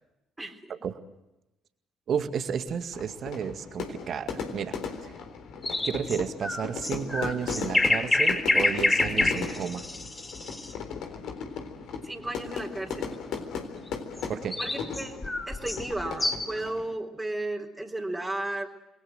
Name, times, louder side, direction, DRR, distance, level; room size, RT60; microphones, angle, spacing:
voice 1, 0.4-0.7 12.0-13.2 14.6-15.2 15.5-18.7, right 2 dB, 10° right, 2 dB, 3.9 m, -34 dB
voice 2, 2.1-4.8 5.0-5.1 5.8-9.9 14.3-14.6, right 7 dB, 55° right, 9 dB, 2.1 m, -32 dB
Fire / Fireworks, 2.9-17.0, left 5 dB, 65° left, 3.9 m, -37 dB
sound 1, 5.6-10.7 14.2-16.6, left 2 dB, 20° left, 5.5 m, -27 dB
28.0 x 21.5 x 7.9 m, 0.96 s
hypercardioid pair, 50°, 0 cm